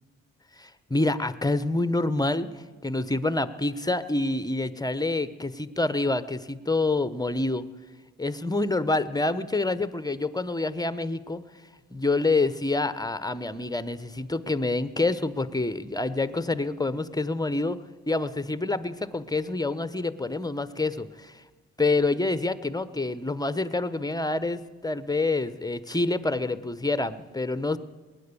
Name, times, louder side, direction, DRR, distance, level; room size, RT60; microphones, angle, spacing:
voice 1, 0.6-7.6 8.2-11.4 11.9-17.8 18.1-21.4 21.8-27.8, left 2 dB, 10° left, 15 dB, 0.9 m, -27 dB
19.5 x 9.8 x 6.8 m, 1.4 s
supercardioid pair, 45°, 34 cm